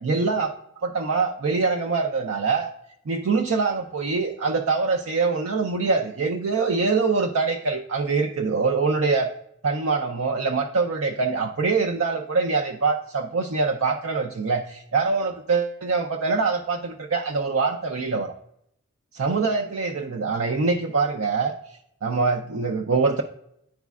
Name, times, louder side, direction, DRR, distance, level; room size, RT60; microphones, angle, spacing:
voice 1, 0.0-2.7 3.1-9.3 9.6-18.3 19.2-23.2, right 4 dB, 75° right, 3 dB, 0.5 m, -24 dB
10.5 x 4.1 x 2.3 m, 0.76 s
head